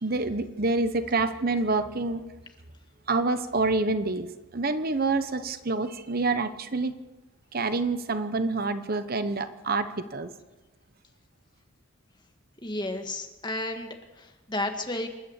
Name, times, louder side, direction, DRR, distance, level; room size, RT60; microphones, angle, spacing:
voice 1, 0.0-2.2 3.1-4.3 4.5-6.9 7.5-10.3, right 3 dB, 45° right, 11 dB, 1.0 m, -27 dB
voice 2, 12.6-15.1, left 1 dB, 20° left, 5 dB, 1.8 m, -32 dB
27.0 x 12.0 x 8.2 m, 1.1 s
head